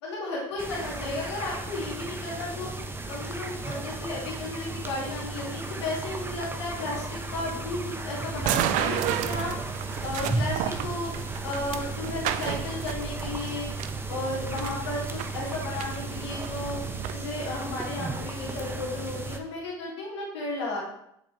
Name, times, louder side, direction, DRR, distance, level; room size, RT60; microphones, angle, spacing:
voice 1, 0.0-2.7 3.1-9.5 10.0-11.1 11.4-13.7 14.1-16.8 17.1-20.8, left 2 dB, 85° left, -4 dB, 2.3 m, -34 dB
sound 1, 0.6-19.4, right 3 dB, 15° right, 1.0 m, -35 dB
sound 2, 8.4-17.1, right 11 dB, 65° right, 0.5 m, -33 dB
7.7 x 6.5 x 3.2 m, 0.76 s
hypercardioid pair, 70°, 14 cm